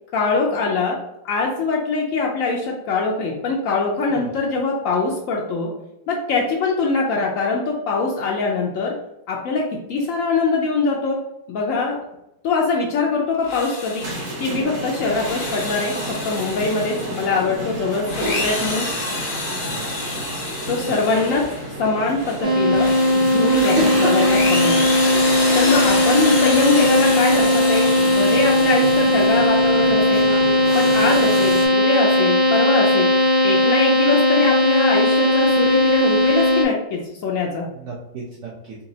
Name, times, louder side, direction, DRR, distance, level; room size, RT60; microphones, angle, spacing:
voice 1, 0.1-1.0 1.2-5.7 6.1-8.9 9.3-11.2 11.5-12.0 12.4-14.1 14.4-18.9 20.7-21.4 21.8-24.8 25.5-30.3 30.7-33.1 33.4-37.7, left 3 dB, 80° left, -2 dB, 0.7 m, -22 dB
Drill, 13.3-14.5 15.0-17.4 18.0-21.7 22.2-29.6, left 2 dB, 55° left, 0.4 m, -28 dB
sound 1, 14.0-31.7, right 1 dB, 55° right, 1.1 m, -32 dB
voice 2, 19.6-20.1 20.9-21.0 23.7-24.5 37.7-38.8, right 2 dB, 75° right, -3 dB, 0.6 m, -28 dB
sound 2, 22.4-36.6, left 1 dB, 35° right, 0.7 m, -17 dB
4.1 x 2.9 x 2.7 m, 0.88 s
omnidirectional pair, 1.9 m